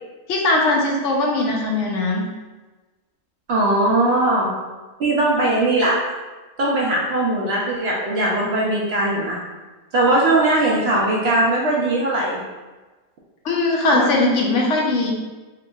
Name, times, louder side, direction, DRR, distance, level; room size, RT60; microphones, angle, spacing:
voice 1, 0.3-2.2 13.4-15.1, left 2 dB, 65° left, -1 dB, 0.8 m, -20 dB
voice 2, 3.5-4.5 5.0-6.0 6.6-9.4 9.9-12.4 13.9-14.1, right 2 dB, 65° right, -4 dB, 0.7 m, -19 dB
3.4 x 2.9 x 2.3 m, 1.2 s
omnidirectional pair, 1.5 m